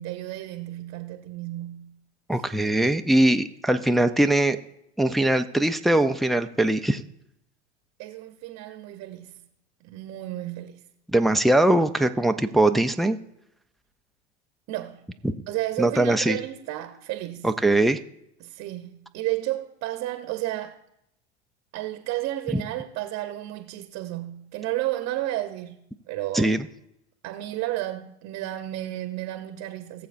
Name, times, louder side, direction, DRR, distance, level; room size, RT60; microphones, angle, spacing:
voice 1, 0.0-2.0 8.0-9.4 9.8-10.8 14.7-15.1 15.5-17.5 18.4-20.8 21.7-26.5 27.2-30.1, right 15 dB, 45° right, 0.9 m, -32 dB
voice 2, 2.3-4.6 5.0-7.0 11.1-13.2 15.2-15.3 15.8-16.4 17.4-18.0 22.5-22.6 26.3-26.7, right 1 dB, ahead, 0.4 m, -21 dB
20.5 x 7.2 x 2.6 m
hypercardioid pair, 90°, 34 cm